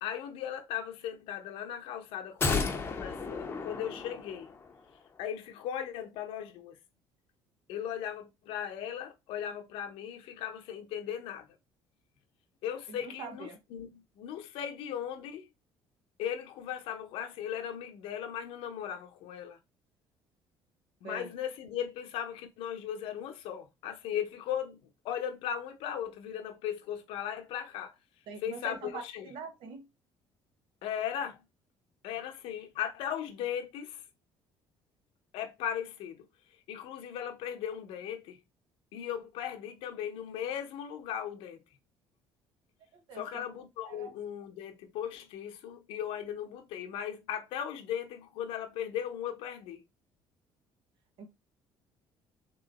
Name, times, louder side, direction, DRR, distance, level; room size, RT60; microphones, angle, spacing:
voice 1, 0.0-4.5 5.2-6.8 7.7-11.6 12.6-15.5 16.2-19.6 21.0-24.8 25.0-27.9 28.4-29.3 30.8-31.4 32.0-34.0 35.3-36.3 36.7-38.4 38.9-41.6 43.1-49.8, left 9 dB, 75° left, 0.8 m, -37 dB
sound 1, 2.4-4.8 5.1-5.2, left 4 dB, 25° left, 0.7 m, -33 dB
voice 2, 12.9-13.6 21.0-21.3 28.3-29.9 42.9-44.1 51.2-51.3, right 4 dB, 65° right, 1.0 m, -44 dB
3.7 x 3.1 x 4.0 m
cardioid pair, 130°, 9 cm